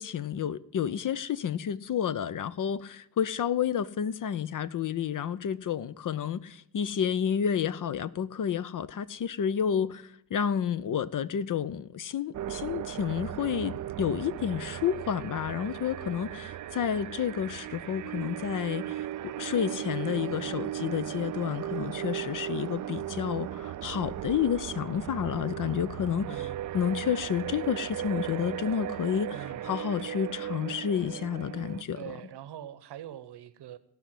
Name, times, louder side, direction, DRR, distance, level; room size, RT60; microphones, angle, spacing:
voice 1, 0.0-26.5 26.7-32.1, left 8 dB, 45° left, 0.6 m, -30 dB
sound 1, 12.3-31.8, right 12 dB, 45° right, 0.5 m, -37 dB
voice 2, 26.2-26.7 29.2-29.8 31.9-33.8, right 11 dB, 65° right, 0.9 m, -43 dB
16.5 x 5.6 x 7.5 m
supercardioid pair, 55°, 44 cm